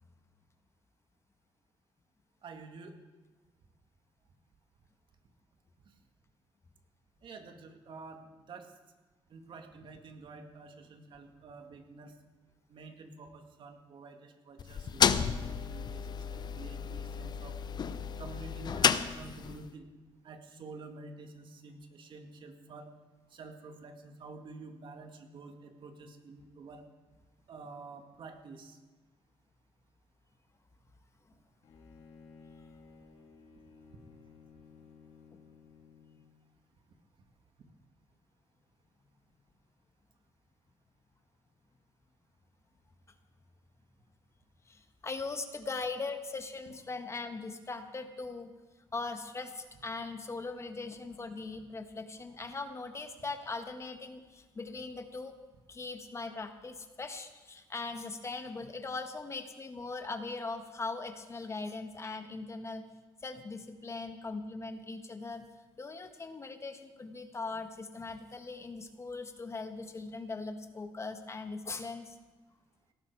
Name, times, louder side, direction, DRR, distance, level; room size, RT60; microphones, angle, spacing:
voice 1, 2.4-3.0 7.2-8.7 9.3-12.1 12.7-17.6 18.2-19.9 20.2-22.9 23.3-26.8 27.5-28.8, right 3 dB, 60° right, 5 dB, 2.0 m, -49 dB
sound 1, 14.6-19.7, left 7 dB, 50° left, 0.7 m, -31 dB
Bowed string instrument, 31.6-36.4, left 5 dB, 65° left, 3.0 m, -56 dB
voice 2, 44.7-48.5 48.9-55.3 55.7-62.8 63.2-65.4 65.8-72.2, left 3 dB, 30° left, 7 dB, 1.5 m, -40 dB
18.0 x 13.5 x 4.7 m, 1.2 s
cardioid pair, 90°, 10 cm